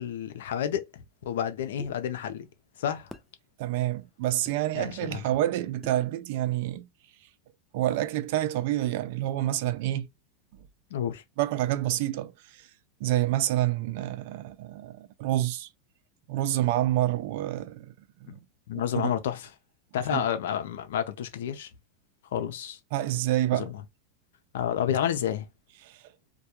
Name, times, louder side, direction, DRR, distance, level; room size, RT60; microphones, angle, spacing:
voice 1, 0.0-2.5 2.8-3.1 4.7-5.2 10.9-11.2 18.7-19.5 19.9-21.7 22.3-22.8 23.5-23.8 24.5-25.5, left 9 dB, 80° left, 0.5 m, -30 dB
sound 1, 1.8-2.0 3.1-3.3 4.5-4.6 5.8-6.1, left 1 dB, 5° left, 0.4 m, -45 dB
voice 2, 3.6-6.9 7.7-10.1 11.4-12.7 13.0-15.7 16.3-17.9 18.2-18.4 19.0-19.1 20.1-20.2 22.9-23.7 25.8-26.0, right 14 dB, 65° right, 0.3 m, -28 dB
2.2 x 2.2 x 2.9 m
supercardioid pair, 135°, 0 cm